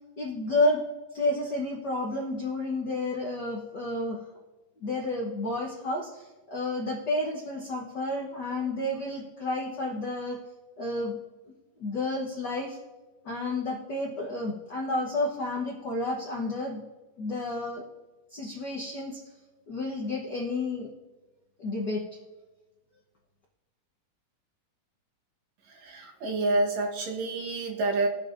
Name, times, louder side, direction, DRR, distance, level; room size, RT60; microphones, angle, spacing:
voice 1, 0.2-0.8 1.1-4.2 4.8-10.4 10.8-11.2 11.8-12.8 13.2-16.8 17.2-17.9 18.3-19.2 19.7-20.9 21.6-22.0, left 2 dB, 60° left, -2 dB, 1.1 m, -30 dB
voice 2, 25.6-28.1, right 2 dB, 70° right, 0 dB, 2.5 m, -28 dB
21.5 x 7.3 x 2.6 m, 1.2 s
omnidirectional pair, 3.4 m